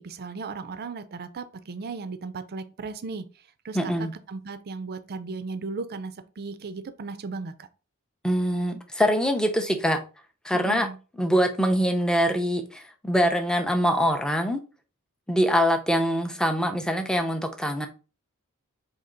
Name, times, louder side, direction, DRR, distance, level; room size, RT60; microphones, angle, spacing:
voice 1, 0.0-3.3 3.6-3.9 4.3-7.7 10.5-11.0, right 4 dB, 45° right, 0.5 m, -36 dB
voice 2, 3.7-4.1 8.2-10.0 10.4-10.9 11.2-14.6 15.3-17.9, equal, 5° left, 0.5 m, -24 dB
4.3 x 2.9 x 3.7 m
head